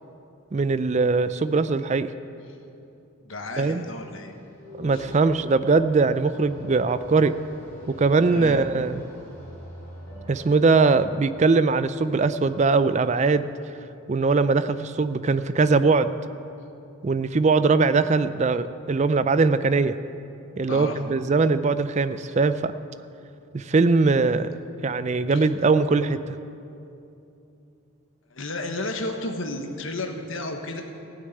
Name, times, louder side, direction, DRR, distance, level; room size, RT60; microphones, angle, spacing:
voice 1, 0.5-2.1 3.6-3.8 4.8-7.3 7.9-9.0 10.3-13.5 14.1-16.1 17.0-20.0 20.6-22.7 23.5-24.5 24.8-26.4, right 4 dB, 30° right, 12 dB, 0.4 m, -21 dB
voice 2, 3.2-4.3 4.9-5.3 7.2-7.3 8.3-8.6 20.7-21.0 25.3-25.5 28.3-30.8, left 2 dB, 65° left, 4 dB, 1.3 m, -33 dB
sound 1, 3.9-10.9, left 1 dB, 10° left, 3.2 m, -43 dB
15.5 x 6.5 x 9.2 m, 2.7 s
head